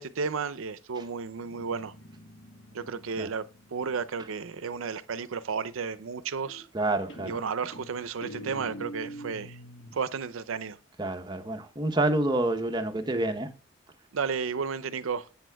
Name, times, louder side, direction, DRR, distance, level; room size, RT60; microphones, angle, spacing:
voice 1, 0.0-1.9 2.7-3.4 3.7-6.7 7.3-9.6 9.9-10.8 14.1-15.2, right 5 dB, 85° right, 0.5 m, -33 dB
Guitar, 1.4-4.9 6.5-6.8 7.1-10.0, equal, 70° left, 1.2 m, -45 dB
voice 2, 6.7-7.3 11.0-13.5, right 2 dB, 20° right, 0.8 m, -28 dB
12.5 x 8.3 x 2.3 m
head